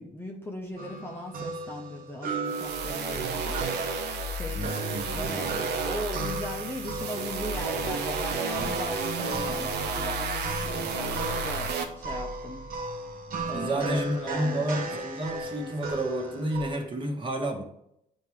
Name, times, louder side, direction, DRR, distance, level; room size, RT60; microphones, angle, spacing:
voice 1, 0.0-3.6 4.3-4.9 5.1-5.6 5.8-12.6 13.4-15.0, left 1 dB, 15° left, 0 dB, 0.8 m, -38 dB
sound 1, 0.8-16.8, right 2 dB, 55° right, 1.0 m, -37 dB
sound 2, 2.5-11.8, right 4 dB, 85° right, 0.9 m, -31 dB
voice 2, 4.5-5.6 13.5-17.6, right 1 dB, 30° right, 2 dB, 1.4 m, -30 dB
9.0 x 3.6 x 3.2 m, 0.76 s
cardioid pair, 110°, 17 cm